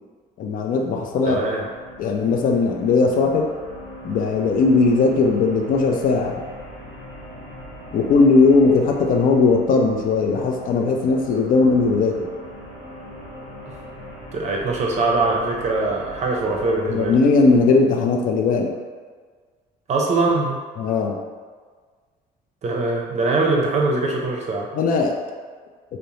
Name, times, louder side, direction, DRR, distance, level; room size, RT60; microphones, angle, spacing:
voice 1, 0.4-1.4 2.0-3.5 4.0-6.4 7.9-12.3 16.9-18.7 20.8-21.2 24.7-25.2, left 4 dB, 55° left, 2 dB, 0.4 m, -18 dB
sound 1, 0.7-17.7, equal, 85° left, 0.9 m, -40 dB
voice 2, 1.2-1.7 14.3-17.1 19.9-20.6 22.6-24.7, right 3 dB, 40° right, -1 dB, 0.5 m, -22 dB
2.5 x 2.0 x 3.0 m, 1.5 s
cardioid pair, 110°, 17 cm